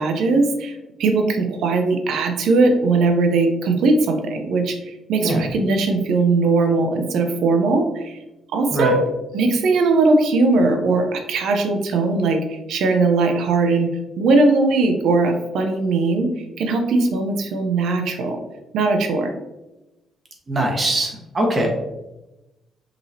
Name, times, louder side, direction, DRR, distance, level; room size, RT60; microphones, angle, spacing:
voice 1, 0.0-8.2 8.5-9.1 9.3-13.9 14.2-16.3 16.6-18.4 18.7-19.3, right 3 dB, 75° right, 4 dB, 0.7 m, -19 dB
voice 2, 20.5-21.7, right 1 dB, 35° right, 0 dB, 1.3 m, -21 dB
5.2 x 3.1 x 2.8 m, 1.0 s
cardioid pair, 90°, 0 cm